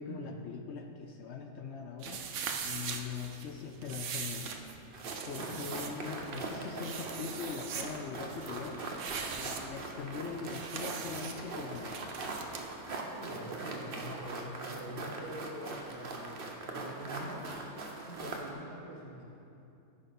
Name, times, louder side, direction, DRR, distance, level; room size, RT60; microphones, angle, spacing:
voice 1, 0.0-2.2 2.6-4.7 5.3-8.8 9.4-12.0, left 6 dB, 65° left, 4 dB, 0.7 m, -41 dB
sound 1, 2.0-12.6, right 6 dB, 75° right, 1.1 m, -41 dB
sound 2, 4.9-18.5, right 3 dB, 45° right, 0.9 m, -41 dB
voice 2, 13.1-17.5 18.0-19.2, right 1 dB, 30° left, -7 dB, 2.6 m, -44 dB
13.5 x 5.5 x 4.0 m, 2.7 s
omnidirectional pair, 1.5 m